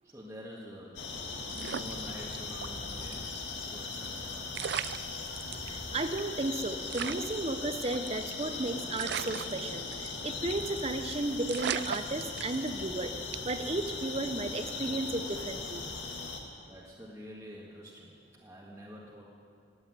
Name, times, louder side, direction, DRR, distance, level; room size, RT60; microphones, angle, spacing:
voice 1, 0.0-1.1 1.5-3.3 3.7-4.8 16.6-19.2, equal, 15° right, -5 dB, 1.8 m, -47 dB
sound 1, 1.0-16.4, left 3 dB, 65° left, 2.0 m, -39 dB
sound 2, 1.5-2.7 3.1-3.2 4.2-4.3 4.5-5.7 6.2-6.3 6.5-6.6 6.9-8.5 9.0-10.2 10.5-10.8 11.1-11.2 11.5-12.9 13.3-13.6, right 9 dB, 60° right, 0.3 m, -37 dB
voice 2, 5.7-13.1 13.4-15.8, right 2 dB, 30° right, 9 dB, 0.8 m, -34 dB
17.0 x 8.6 x 9.8 m, 2.3 s
head